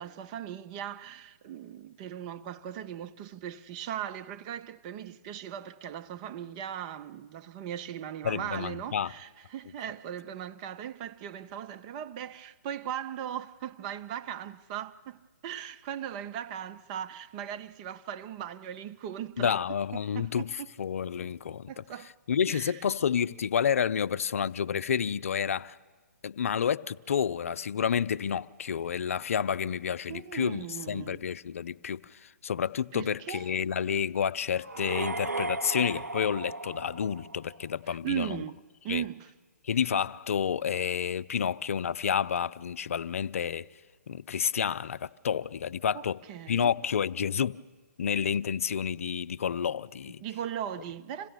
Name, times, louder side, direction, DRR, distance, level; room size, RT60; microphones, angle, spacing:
voice 1, 0.0-19.6 20.1-20.7 21.7-22.1 22.5-22.8 30.1-31.2 32.9-33.5 37.9-38.6 38.8-39.3 45.9-46.0 46.3-46.7 50.2-51.3, right 10 dB, 30° right, 0.5 m, -38 dB
voice 2, 8.2-9.1 19.4-21.8 22.3-25.8 26.2-38.4 38.9-39.0 39.6-43.7 44.1-46.2 46.5-47.6 48.0-50.2, left 7 dB, 55° left, 0.5 m, -30 dB
sound 1, 34.6-37.6, right 2 dB, 85° right, 0.5 m, -35 dB
26.5 x 16.5 x 7.0 m
figure-of-eight pair, 130°, 9 cm